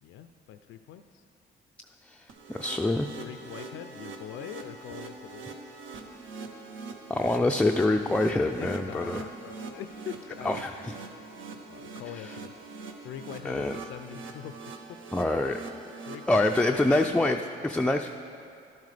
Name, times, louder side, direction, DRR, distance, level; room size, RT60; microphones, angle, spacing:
voice 1, 0.0-1.2 3.2-5.5 8.6-11.4 11.7-12.5 13.0-15.0 16.0-17.3, left 9 dB, 80° left, 8 dB, 0.4 m, -43 dB
voice 2, 2.0-3.1 7.1-9.3 10.4-10.9 12.1-12.4 13.4-13.8 15.1-15.6 16.3-18.1, left 2 dB, 5° left, 4 dB, 0.3 m, -26 dB
sound 1, 2.3-17.1, right 4 dB, 75° right, 1.0 m, -43 dB
11.5 x 10.5 x 3.3 m, 2.5 s
cardioid pair, 90°, 20 cm